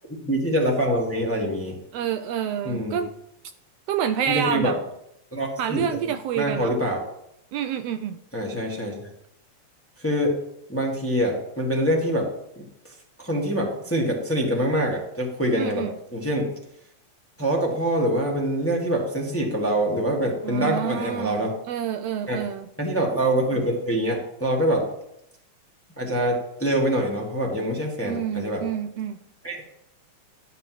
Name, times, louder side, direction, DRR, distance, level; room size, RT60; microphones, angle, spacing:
voice 1, 0.2-1.8 2.6-3.0 4.3-4.7 5.3-7.0 8.3-8.9 10.0-10.3 10.7-12.3 12.5-12.6 13.2-15.8 16.1-16.5 17.4-21.5 22.3-22.4 22.8-24.8 26.0-28.6 29.4-29.6, right 1 dB, 10° left, -1 dB, 1.0 m, -25 dB
voice 2, 1.9-3.1 3.9-4.8 5.6-6.7 7.5-8.2 15.6-15.9 20.4-22.7 28.0-29.2, right 9 dB, 85° right, 9 dB, 1.4 m, -28 dB
12.0 x 4.1 x 7.6 m, 0.78 s
omnidirectional pair, 3.3 m